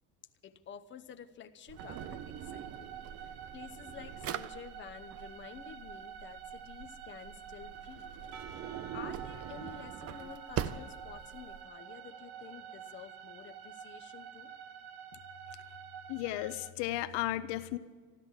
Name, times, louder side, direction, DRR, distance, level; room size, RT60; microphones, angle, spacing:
voice 1, 0.4-3.0 3.2-8.1 8.9-14.5, left 8 dB, 25° left, 7 dB, 0.8 m, -50 dB
Drawer open or close, 1.7-11.6, right 9 dB, 35° right, 0.5 m, -43 dB
sound 1, 1.8-16.7, right 8 dB, 60° right, 1.0 m, -49 dB
Percussion / Church bell, 8.3-13.6, right 7 dB, 80° right, 3.1 m, -53 dB
voice 2, 16.1-17.8, left 15 dB, 70° left, 14 dB, 0.8 m, -34 dB
14.0 x 12.5 x 7.9 m, 1.5 s
cardioid pair, 145°, 43 cm